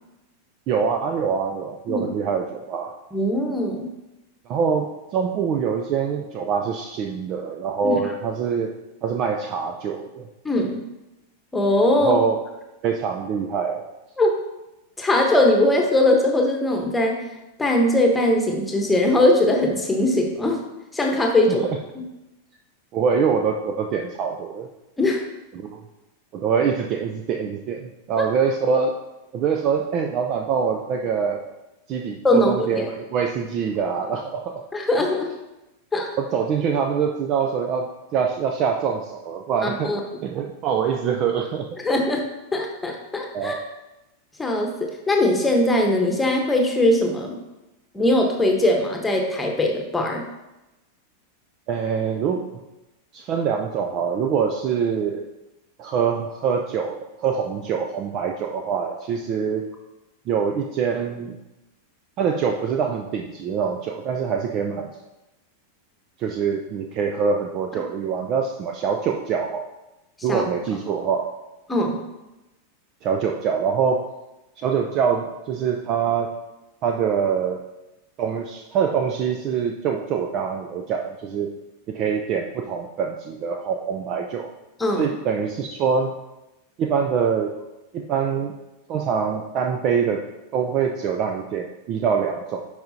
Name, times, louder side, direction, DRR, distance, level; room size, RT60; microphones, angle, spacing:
voice 1, 0.7-2.9 4.5-8.7 9.0-10.3 12.0-12.4 12.8-13.8 21.5-21.8 22.9-24.7 25.5-25.8 26.3-28.9 29.3-31.4 31.9-34.6 36.2-39.9 40.2-41.7 43.3-43.6 51.7-52.4 53.1-55.2 55.8-59.6 60.3-61.4 62.2-64.9 66.2-69.6 70.2-71.3 73.0-74.1 74.6-76.3 76.8-77.6 78.2-81.5 81.9-84.5 84.9-86.1 86.8-87.5 87.9-88.5 88.9-90.2 90.5-92.7, right 6 dB, 35° right, 3 dB, 0.5 m, -24 dB
voice 2, 3.1-3.9 7.8-8.0 10.4-10.8 11.5-12.2 14.2-14.4 15.0-17.2 17.6-20.6 20.9-21.7 21.9-22.0 25.0-25.2 28.2-28.3 32.2-32.9 34.7-35.3 35.9-36.1 39.6-40.0 41.8-42.2 42.5-43.6 44.4-47.4 47.9-50.2 70.3-70.4 71.7-72.0 84.8-85.1, left 1 dB, 10° left, 2 dB, 1.2 m, -20 dB
10.5 x 4.8 x 2.8 m, 0.98 s
figure-of-eight pair, 90°, 0 cm